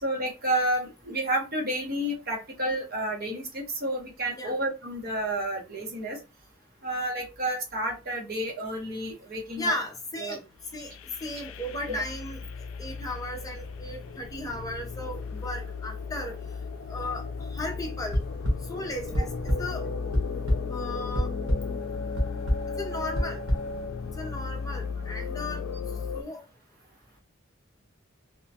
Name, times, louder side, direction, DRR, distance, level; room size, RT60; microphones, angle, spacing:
voice 1, 0.0-6.2 6.8-9.7 10.2-10.4 11.9-12.0 19.2-19.3, right 1 dB, 45° right, 0.8 m, -30 dB
voice 2, 9.6-10.4 10.7-10.9 11.2-12.4 12.8-16.3 16.9-17.2 17.5-18.2 18.7-19.8 20.7-21.3 22.8-23.4 24.2-25.6 26.1-26.4, left 1 dB, 15° left, 0.4 m, -35 dB
sound 1, 10.6-26.2, left 4 dB, 80° left, 0.3 m, -35 dB
sound 2, 18.1-18.5 19.1-19.6 20.0-20.6 21.1-21.6 22.2-22.6 23.1-23.6, equal, 80° right, 1.0 m, -24 dB
3.0 x 2.1 x 2.7 m
head